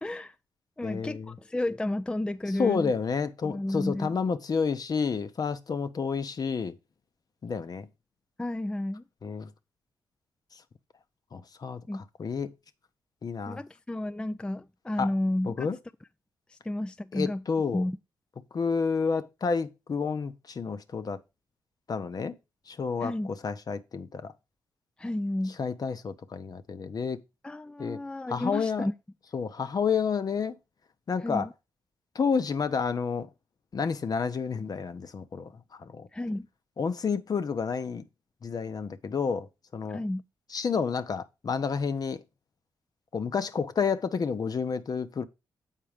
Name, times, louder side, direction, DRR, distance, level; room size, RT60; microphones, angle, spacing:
voice 1, 0.0-0.3 0.8-3.0 3.4-4.1 8.4-9.0 11.9-12.0 13.5-15.7 16.5-17.4 17.7-18.0 23.0-23.3 25.0-25.6 27.4-28.9 31.2-31.5 36.1-36.5 39.9-40.2, left 1 dB, 10° left, 0.4 m, -32 dB
voice 2, 0.8-1.3 2.6-6.7 7.4-7.9 9.2-9.5 11.3-12.5 13.2-13.6 15.0-15.1 15.5-15.8 17.1-17.8 18.5-21.2 21.9-22.4 22.7-23.1 23.4-24.3 25.6-27.2 27.8-28.0 28.3-28.9 29.3-30.6 31.1-31.5 32.1-33.3 33.7-35.5 35.8-36.1 36.8-38.0 38.4-39.5 39.7-40.0 40.5-42.2 43.1-45.2, left 5 dB, 50° left, 0.8 m, -30 dB
7.4 x 4.6 x 5.0 m
supercardioid pair, 50°, 8 cm